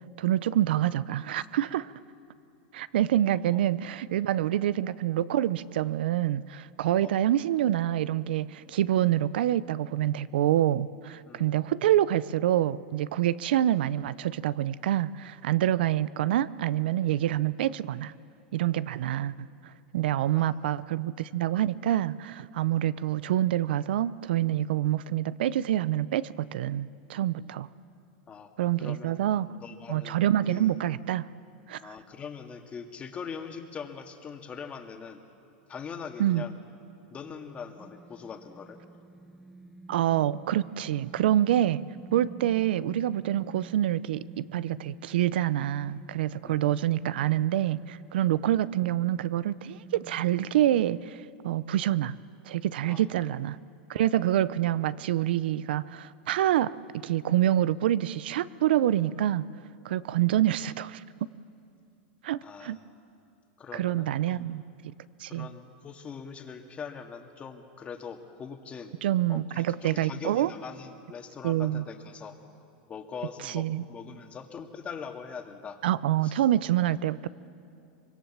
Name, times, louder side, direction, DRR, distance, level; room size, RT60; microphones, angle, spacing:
voice 1, 0.2-1.9 2.7-18.1 18.5-19.5 19.9-27.7 28.6-29.5 29.9-31.3 31.7-31.9 36.2-36.4 39.9-41.8 42.1-52.2 52.4-53.6 53.9-59.4 59.8-61.0 62.2-62.8 63.7-64.6 65.2-65.5 69.0-70.5 71.4-71.8 73.4-73.8 75.8-77.3, right 12 dB, 80° right, 18 dB, 0.6 m, -26 dB
voice 2, 3.3-3.6 7.0-7.2 11.2-11.5 20.3-20.7 27.4-27.6 28.3-28.5 28.8-30.2 30.5-30.7 31.8-35.2 35.7-36.6 37.1-38.8 46.4-46.7 52.9-53.0 62.4-62.8 63.6-64.5 65.3-68.9 69.3-72.4 72.9-75.8 76.2-76.3 76.8-76.9, left 6 dB, 25° left, 5 dB, 2.0 m, -42 dB
sound 1, 37.8-51.0, right 2 dB, ahead, 1.2 m, -49 dB
24.5 x 22.0 x 7.4 m, 2.7 s
supercardioid pair, 130°, 5 cm